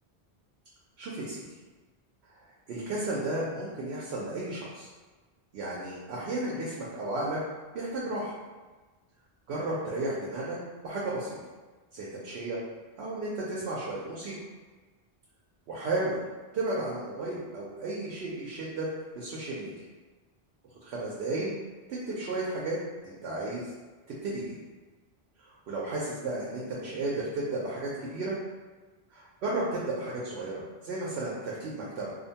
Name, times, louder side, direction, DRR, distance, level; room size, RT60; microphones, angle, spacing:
voice 1, 1.0-1.4 2.7-4.9 5.5-7.4 7.7-8.4 9.5-10.6 10.8-11.4 11.9-12.6 13.0-14.3 15.7-16.2 16.5-18.9 19.2-19.7 20.8-21.5 21.9-22.8 23.0-23.7 24.2-24.5 25.7-28.4 29.1-32.1, right 2 dB, 85° right, -5 dB, 0.8 m, -33 dB
2.6 x 2.1 x 2.7 m, 1.3 s
omnidirectional pair, 1.0 m